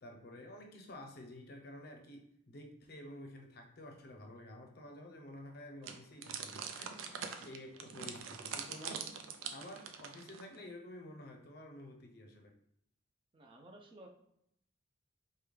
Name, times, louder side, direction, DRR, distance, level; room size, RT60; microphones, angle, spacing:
voice 1, 0.0-9.1 9.5-12.5, left 1 dB, 50° left, 3 dB, 0.6 m, -51 dB
sound 1, 5.8-10.6, right 6 dB, 80° right, 0.4 m, -44 dB
voice 2, 13.3-14.1, right 1 dB, 25° right, 1 dB, 0.4 m, -55 dB
5.0 x 2.2 x 3.2 m, 0.75 s
head